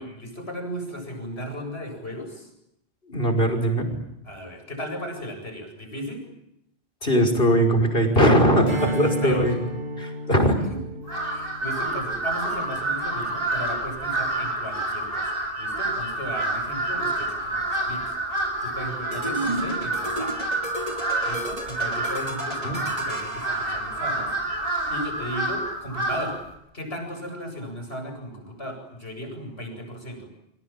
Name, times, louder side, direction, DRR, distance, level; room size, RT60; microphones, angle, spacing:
voice 1, 0.0-2.5 4.2-6.2 8.8-9.5 11.3-15.3 15.6-18.1 18.6-20.4 21.2-24.3 24.9-26.4 26.7-30.3, equal, 80° left, 4 dB, 8.5 m, -35 dB
voice 2, 3.1-3.9 7.0-9.6 10.0-10.6 22.6-22.8, equal, 60° left, 2 dB, 5.8 m, -20 dB
Strum, 8.6-13.4, equal, 90° right, 4.3 m, -34 dB
Crow, 11.0-26.4, right 2 dB, 65° right, 7.9 m, -28 dB
sound 1, 19.1-24.3, right 1 dB, 35° right, 3.0 m, -34 dB
29.5 x 25.0 x 7.5 m, 0.81 s
omnidirectional pair, 1.1 m